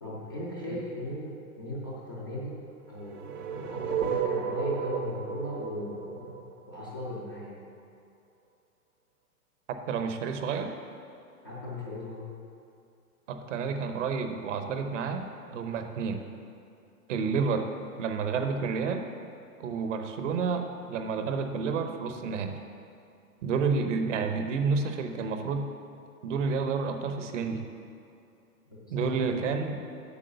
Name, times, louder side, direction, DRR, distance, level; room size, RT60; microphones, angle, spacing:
voice 1, 0.0-2.6 2.9-7.6 11.4-12.3 28.9-29.4, left 1 dB, 15° left, -8 dB, 0.3 m, -37 dB
sound 1, 3.0-7.1, right 7 dB, 75° right, 1.3 m, -33 dB
voice 2, 9.9-10.7 13.3-16.2 17.1-17.7 18.0-19.1 19.6-22.6 23.4-25.7 26.2-27.6 28.9-29.8, right 5 dB, 50° right, 6 dB, 0.9 m, -30 dB
8.4 x 6.3 x 6.6 m, 2.5 s
hypercardioid pair, 155°, 46 cm